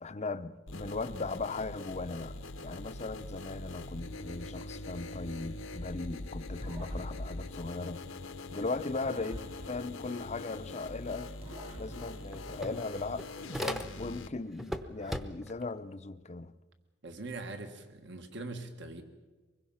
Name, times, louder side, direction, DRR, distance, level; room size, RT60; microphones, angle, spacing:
voice 1, 0.0-8.0 8.5-11.3 11.8-13.3 13.6-16.5, left 3 dB, 35° left, 0.7 m, -38 dB
sound 1, 0.7-14.3, left 2 dB, 85° left, 1.2 m, -43 dB
sound 2, 6.6-8.5 9.0-10.9 11.4-13.1, equal, 30° right, 1.6 m, -50 dB
sound 3, 11.6-11.7 12.0-14.2 14.6-15.6, equal, ahead, 0.9 m, -39 dB
voice 2, 17.0-19.0, right 2 dB, 60° right, 1.7 m, -42 dB
24.5 x 21.5 x 5.8 m
head